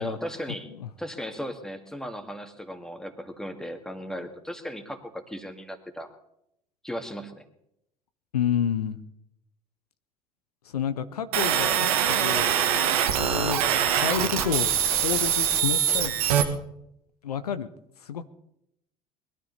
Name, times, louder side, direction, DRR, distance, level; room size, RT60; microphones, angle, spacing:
voice 1, 0.0-0.7 1.0-6.1 6.8-7.4, equal, 5° left, 7 dB, 2.0 m, -36 dB
voice 2, 8.3-9.0 10.7-12.5 12.9-16.1 17.2-17.7 18.0-18.3, left 8 dB, 80° left, 11 dB, 0.7 m, -30 dB
sound 1, 11.3-16.4, right 9 dB, 70° right, 1.6 m, -23 dB
21.0 x 12.5 x 4.1 m, 0.79 s
figure-of-eight pair, 65°, 19 cm